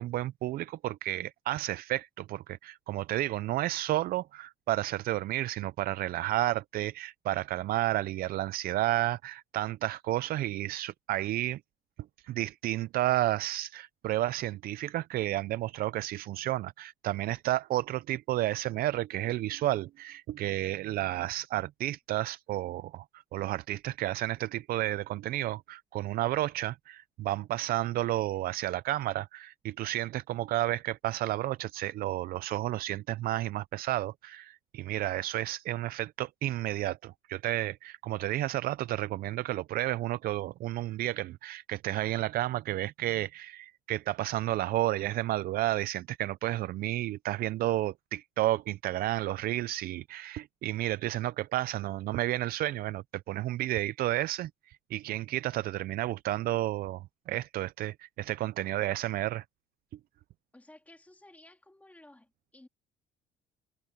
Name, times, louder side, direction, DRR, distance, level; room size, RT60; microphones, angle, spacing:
voice 1, 0.0-11.6 12.2-23.0 23.3-59.4, right 15 dB, 60° right, 0.4 m, -31 dB
voice 2, 60.5-62.7, left 1 dB, 10° left, 2.5 m, -55 dB
cardioid pair, 110°, 17 cm